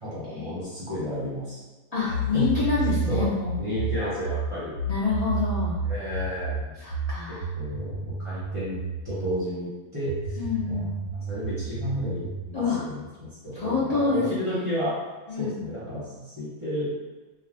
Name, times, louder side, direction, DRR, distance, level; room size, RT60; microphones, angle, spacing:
voice 1, 0.0-1.6 2.1-2.5 3.1-3.3 3.6-4.7 5.9-6.7 7.3-10.4 10.6-15.0 15.4-16.9, equal, 25° right, -10 dB, 0.8 m, -32 dB
voice 2, 1.9-3.6 4.9-5.8 6.8-7.4 10.4-10.9 12.5-12.8 13.5-14.7 15.3-15.6, left 4 dB, 50° left, -10 dB, 0.5 m, -27 dB
sound 1, 2.1-9.4 10.1-12.5, right 3 dB, 75° left, 1.2 m, -31 dB
2.5 x 2.3 x 3.3 m, 1.2 s
omnidirectional pair, 1.5 m